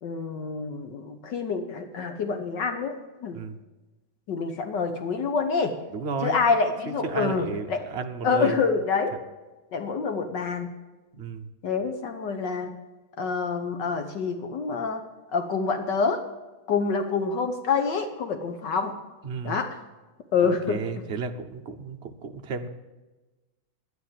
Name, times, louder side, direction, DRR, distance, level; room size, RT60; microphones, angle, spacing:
voice 1, 0.0-2.9 3.2-3.4 4.3-5.8 6.2-7.9 8.2-9.2 9.7-10.7 11.6-12.7 13.2-15.0 15.3-16.2 16.7-19.0 19.4-19.8 20.3-20.8, left 5 dB, 65° left, 7 dB, 1.6 m, -27 dB
voice 2, 5.9-6.4 6.9-8.6 11.1-11.5 19.2-19.6 20.4-22.7, right 5 dB, 50° right, 6 dB, 0.8 m, -33 dB
11.0 x 9.5 x 7.4 m, 1.1 s
omnidirectional pair, 2.2 m